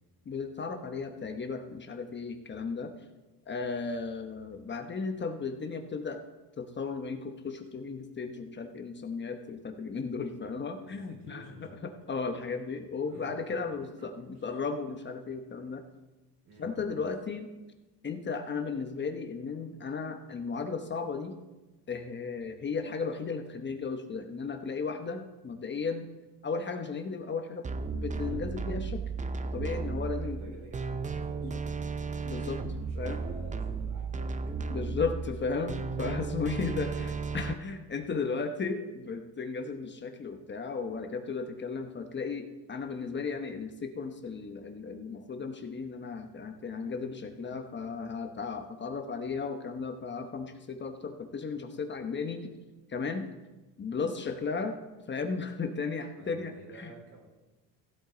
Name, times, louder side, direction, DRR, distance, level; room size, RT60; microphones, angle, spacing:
voice 1, 0.3-2.9 3.5-6.2 6.6-15.8 16.6-17.5 18.0-21.4 21.9-26.1 26.4-29.0 29.5-30.4 31.4-31.6 32.2-33.2 34.7-52.6 52.9-53.3 53.8-54.8 55.1-56.9, left 4 dB, 30° left, 6 dB, 0.9 m, -35 dB
voice 2, 10.8-11.8 13.0-13.4 14.3-14.5 16.4-16.9 30.1-32.0 32.7-34.4 56.2-57.2, right 2 dB, 85° right, -2 dB, 4.5 m, -51 dB
sound 1, 27.6-37.5, right 4 dB, 20° right, 0.6 m, -34 dB
15.5 x 8.2 x 3.9 m, 1.1 s
cardioid pair, 125°, 38 cm